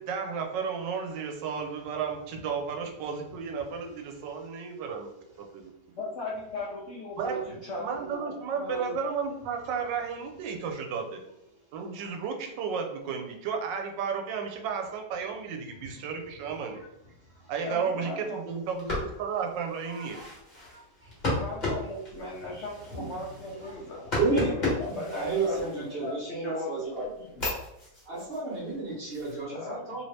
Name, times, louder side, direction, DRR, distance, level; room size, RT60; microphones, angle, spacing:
voice 1, 0.0-5.1 5.4-5.7 7.2-7.4 7.8-11.2 11.7-16.8 17.5-20.2, right 6 dB, 85° right, 3 dB, 1.3 m, -33 dB
voice 2, 6.0-9.0 17.6-18.4 21.3-25.7 26.0-27.5 29.5-30.0, left 2 dB, 75° left, -3 dB, 0.6 m, -38 dB
sound 1, 18.6-26.3 26.8-29.4, left 2 dB, 30° left, 1.2 m, -35 dB
voice 3, 19.8-20.3 20.7-21.4 22.9-23.1 23.5-23.8 24.1-27.1 28.0-30.0, right 3 dB, 40° right, -5 dB, 1.3 m, -32 dB
3.1 x 2.7 x 3.1 m, 0.83 s
omnidirectional pair, 1.9 m